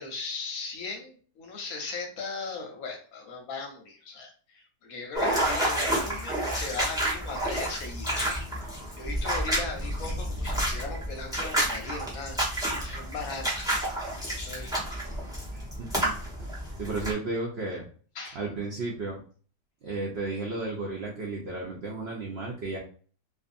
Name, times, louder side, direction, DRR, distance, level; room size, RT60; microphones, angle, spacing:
voice 1, 0.0-13.8 14.2-14.7 18.1-18.4, left 4 dB, 65° left, 2 dB, 1.0 m, -38 dB
sound 1, 5.1-17.1, right 1 dB, 5° right, 0.7 m, -30 dB
voice 2, 15.5-16.2 16.8-17.8 18.4-19.2 19.8-22.8, right 3 dB, 75° right, -2 dB, 0.6 m, -33 dB
2.6 x 2.5 x 2.5 m, 0.42 s
omnidirectional pair, 1.8 m